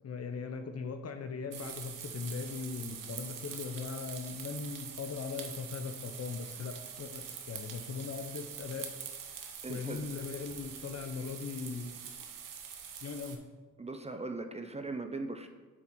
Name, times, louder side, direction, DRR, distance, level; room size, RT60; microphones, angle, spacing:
voice 1, 0.0-8.9 9.7-11.9 13.0-13.4, left 5 dB, 50° left, 7 dB, 0.7 m, -39 dB
sound 1, 1.5-13.3, right 7 dB, 80° right, 0.9 m, -44 dB
voice 2, 9.6-10.0 13.8-15.5, right 3 dB, 20° right, 6 dB, 0.5 m, -39 dB
7.2 x 4.3 x 4.6 m, 1.3 s
cardioid pair, 90°, 33 cm